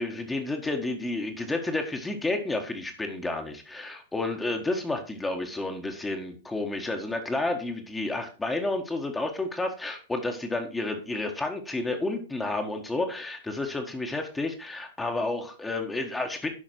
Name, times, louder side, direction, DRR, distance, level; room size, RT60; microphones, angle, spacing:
voice 1, 0.0-16.5, left 2 dB, 10° left, 4 dB, 1.5 m, -31 dB
11.0 x 5.6 x 4.5 m, 0.35 s
figure-of-eight pair, 105°, 0 cm